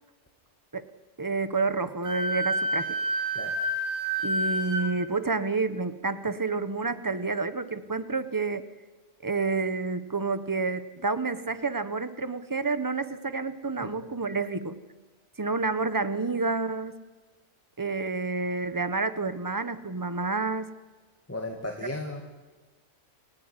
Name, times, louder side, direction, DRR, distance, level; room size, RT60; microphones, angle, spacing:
voice 1, 1.2-3.0 4.2-8.7 9.2-14.8 15.4-16.9 17.8-20.7, right 3 dB, 15° right, 12 dB, 1.0 m, -29 dB
Wind instrument woodwind instrument, 2.0-4.8, right 1 dB, 70° right, 5.7 m, -28 dB
voice 2, 21.3-22.2, left 1 dB, 10° left, 2 dB, 2.2 m, -35 dB
28.5 x 16.5 x 9.8 m, 1.3 s
omnidirectional pair, 1.3 m